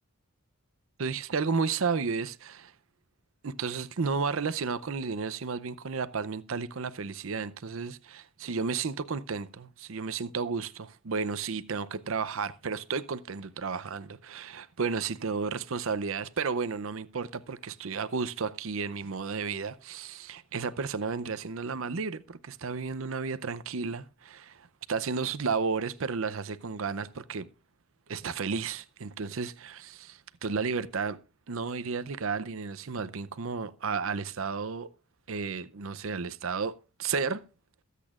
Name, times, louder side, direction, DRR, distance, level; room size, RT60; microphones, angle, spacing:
voice 1, 1.0-2.7 3.4-27.5 28.1-31.2 31.5-34.9 35.3-37.4, right 5 dB, 70° right, 0.6 m, -33 dB
22.0 x 8.3 x 2.4 m
head